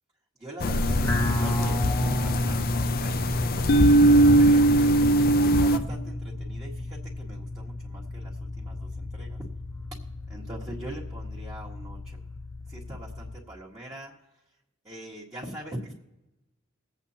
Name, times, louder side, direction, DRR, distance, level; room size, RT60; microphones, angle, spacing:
voice 1, 0.4-3.1 3.5-5.1 5.4-8.3 8.6-9.4 10.3-12.2 12.7-14.1 14.9-15.9, right 1 dB, 15° right, -6 dB, 1.8 m, -42 dB
sound 1, 0.6-5.8, right 1 dB, 45° left, 0.6 m, -21 dB
sound 2, 0.9-13.3, left 1 dB, 15° left, 0.8 m, -32 dB
22.0 x 8.2 x 2.9 m, 0.96 s
head